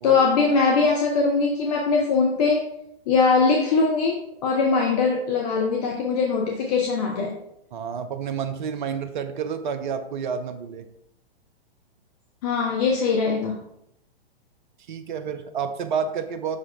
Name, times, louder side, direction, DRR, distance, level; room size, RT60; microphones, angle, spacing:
voice 1, 0.0-2.6 3.1-7.3 12.4-13.6, left 4 dB, 40° left, 1 dB, 0.8 m, -21 dB
voice 2, 7.7-10.9 14.9-16.6, right 6 dB, 50° right, 9 dB, 0.6 m, -29 dB
5.9 x 5.0 x 3.4 m, 0.77 s
figure-of-eight pair, 110°, 31 cm